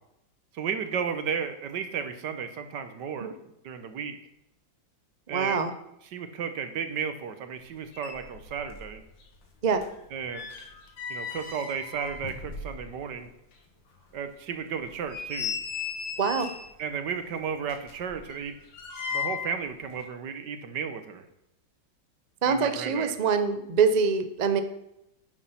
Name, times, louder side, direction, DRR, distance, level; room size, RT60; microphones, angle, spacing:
voice 1, 0.5-3.3 3.6-4.2 5.3-5.6 6.1-9.0 10.1-10.5 11.1-13.3 14.1-15.6 16.8-18.5 19.1-21.2 22.4-23.1, right 6 dB, 70° right, 9 dB, 1.6 m, -33 dB
voice 2, 5.3-5.7 9.6-9.8 16.2-16.5 22.4-24.6, right 5 dB, 50° right, 9 dB, 0.5 m, -24 dB
sound 1, 7.7-7.8 7.9-8.9 9.2-13.2 13.5-13.6 14.1-14.2 14.8-16.8 17.6-19.6 19.9-20.0, left 6 dB, 85° left, 2.3 m, -37 dB
9.8 x 7.3 x 5.7 m, 0.82 s
omnidirectional pair, 2.0 m